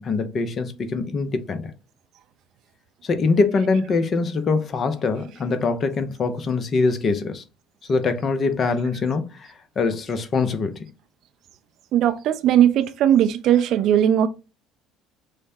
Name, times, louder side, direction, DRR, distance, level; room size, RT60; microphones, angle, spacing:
voice 1, 0.0-1.7 3.0-7.4 7.9-9.5 9.8-10.8, left 4 dB, 40° left, 0.7 m, -23 dB
voice 2, 11.9-14.3, right 10 dB, 55° right, 0.4 m, -18 dB
6.3 x 2.1 x 2.7 m
figure-of-eight pair, 55°, 0 cm